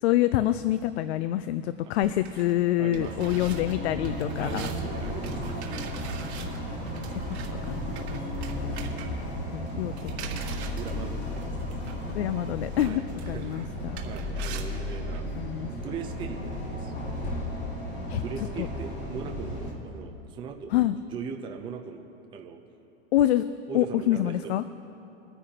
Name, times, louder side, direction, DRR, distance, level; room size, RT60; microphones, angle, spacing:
voice 1, 0.0-4.7 6.3-6.7 7.1-7.4 7.7-7.8 8.1-8.2 9.5-9.9 10.3-10.4 12.1-14.0 15.4-15.7 18.1-18.2 18.6-18.7 20.7-21.0 23.1-23.4 23.7-24.6, left 13 dB, 70° left, 13 dB, 0.5 m, -26 dB
sound 1, 2.0-15.2, right 7 dB, 70° right, 1.7 m, -43 dB
voice 2, 2.8-3.4 4.4-5.7 6.9-7.0 10.8-11.5 12.8-13.6 14.0-16.9 18.1-20.8 21.1-22.6 23.7-24.7, right 6 dB, 15° right, 3 dB, 0.6 m, -40 dB
sound 2, 3.0-19.7, left 1 dB, 30° left, 2.3 m, -34 dB
23.0 x 9.9 x 2.9 m, 2.9 s
supercardioid pair, 150°, 34 cm